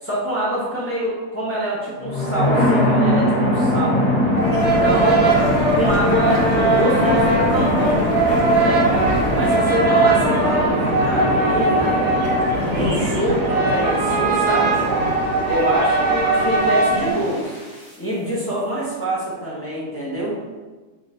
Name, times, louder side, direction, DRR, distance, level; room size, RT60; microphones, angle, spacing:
voice 1, 0.0-4.0 4.6-5.4 5.7-8.0 8.5-8.8 9.3-12.1 12.7-14.8 15.4-17.6 18.0-20.4, right 1 dB, 10° left, -7 dB, 0.7 m, -25 dB
sound 1, 2.0-17.9, left 1 dB, 30° left, 1.6 m, -22 dB
sound 2, 4.4-17.1, right 2 dB, 55° right, 0.9 m, -20 dB
Stream, 4.6-9.6, equal, 60° left, 1.2 m, -33 dB
4.1 x 2.5 x 4.3 m, 1.3 s
omnidirectional pair, 1.7 m